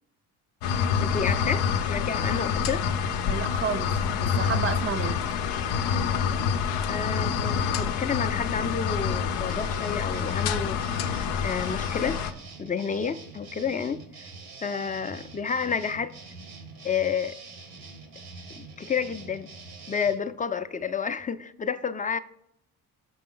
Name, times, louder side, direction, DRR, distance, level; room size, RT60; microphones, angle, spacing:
sound 1, 0.6-12.3, left 7 dB, 85° left, 0.6 m, -27 dB
voice 1, 1.0-3.1 6.9-10.8 11.4-12.2 12.6-14.3 14.6-16.1 16.8-17.4 18.6-19.5 19.9-22.2, left 6 dB, 20° left, 0.4 m, -30 dB
voice 2, 3.3-5.2, right 6 dB, 35° right, 0.5 m, -31 dB
sound 2, 9.5-20.2, right 3 dB, 90° right, 1.4 m, -45 dB
6.1 x 5.8 x 3.8 m
supercardioid pair, 75°, 39 cm